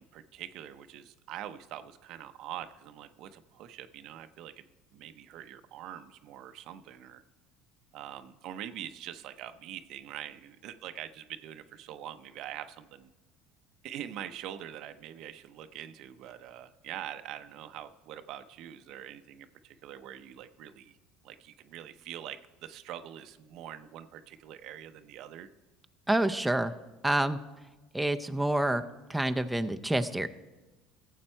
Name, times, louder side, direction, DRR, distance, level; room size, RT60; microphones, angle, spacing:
voice 1, 0.0-4.6 4.9-7.2 7.9-13.1 13.8-21.0 21.2-25.5, right 11 dB, 65° right, 11 dB, 0.6 m, -44 dB
voice 2, 26.1-26.7 27.0-27.4 27.9-28.8 29.1-30.3, right 1 dB, 5° right, 7 dB, 0.6 m, -27 dB
15.5 x 7.4 x 4.4 m, 1.1 s
supercardioid pair, 90°, 0 cm